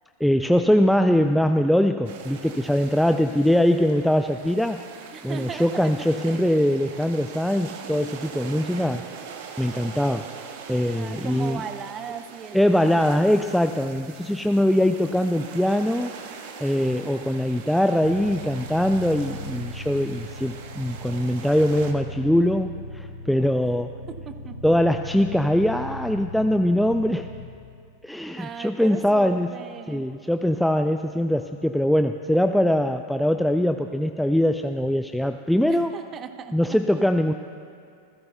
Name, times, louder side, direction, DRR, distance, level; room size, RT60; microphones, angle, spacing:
voice 1, 0.2-4.8 5.2-9.0 9.6-10.3 10.7-11.6 12.5-16.1 16.6-23.9 24.6-27.3 28.0-29.5 29.9-35.9 36.5-37.3, equal, ahead, 7 dB, 0.3 m, -22 dB
sound 1, 2.1-21.9, right 6 dB, 50° right, 1.1 m, -42 dB
voice 2, 5.1-6.6 10.9-13.0 24.1-24.6 28.4-30.1 35.6-37.0, right 7 dB, 25° right, 10 dB, 0.7 m, -38 dB
sound 2, 18.0-27.4, left 1 dB, 70° left, 3.4 m, -38 dB
26.5 x 15.5 x 2.3 m, 2.5 s
figure-of-eight pair, 90°, 0 cm